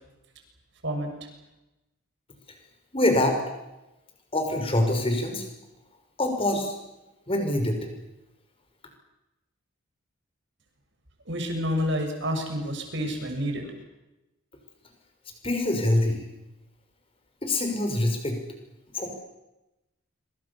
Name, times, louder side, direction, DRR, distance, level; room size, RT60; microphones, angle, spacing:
voice 1, 2.9-3.4 4.3-5.5 6.2-6.8 7.3-7.9 15.4-16.2 17.4-18.4 18.9-19.2, left 1 dB, 25° left, 4 dB, 6.1 m, -25 dB
voice 2, 11.3-13.7, equal, 60° right, 4 dB, 6.8 m, -29 dB
26.0 x 25.5 x 7.2 m, 0.97 s
head